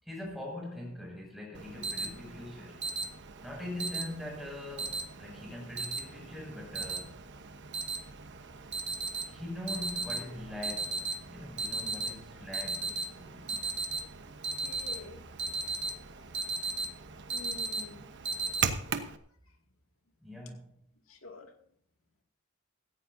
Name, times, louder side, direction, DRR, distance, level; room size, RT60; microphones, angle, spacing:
voice 1, 0.0-2.8 3.4-7.2 9.3-13.5 20.2-20.8, left 1 dB, ahead, -2 dB, 6.5 m, -42 dB
Alarm, 1.5-19.2, right 4 dB, 60° right, 1.1 m, -37 dB
voice 2, 14.3-15.2 17.3-18.1 18.6-19.1 19.4-19.6 21.1-21.5, left 2 dB, 80° left, 3 dB, 2.3 m, -49 dB
17.5 x 15.0 x 2.7 m, 0.65 s
head